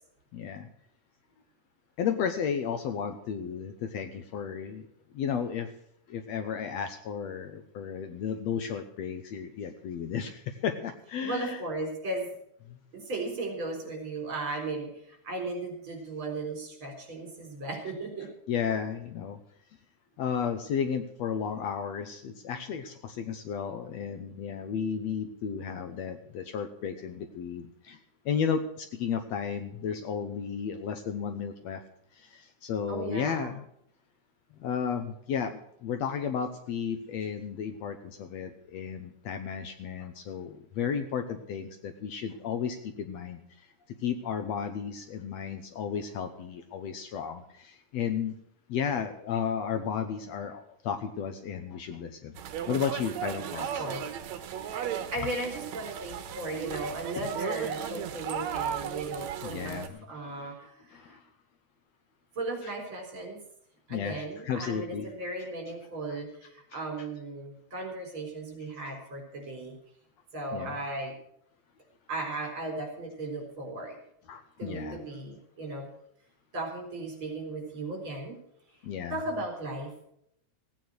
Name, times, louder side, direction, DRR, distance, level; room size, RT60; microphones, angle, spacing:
voice 1, 0.3-0.7 2.0-4.9 5.1-5.7 6.1-11.6 12.7-12.8 18.5-19.4 20.2-28.0 28.3-31.8 32.1-33.6 34.6-43.4 44.0-48.4 48.7-52.4 52.7-53.7 58.2-58.3 59.4-60.5 60.9-61.2 63.9-65.1 70.5-70.7 74.3-75.0 78.8-79.2, left 7 dB, 70° left, 8 dB, 1.9 m, -33 dB
voice 2, 11.2-12.3 12.9-18.3 32.9-33.5 53.5-54.0 54.6-54.9 55.1-59.8 60.1-61.2 62.3-63.4 63.9-69.8 70.3-71.1 72.1-74.0 74.6-75.9 76.5-78.4 79.1-80.1, right 2 dB, 40° right, 2 dB, 4.7 m, -36 dB
sound 1, 52.4-59.9, right 9 dB, 70° right, 2.2 m, -36 dB
16.0 x 9.1 x 6.3 m, 0.73 s
omnidirectional pair, 3.5 m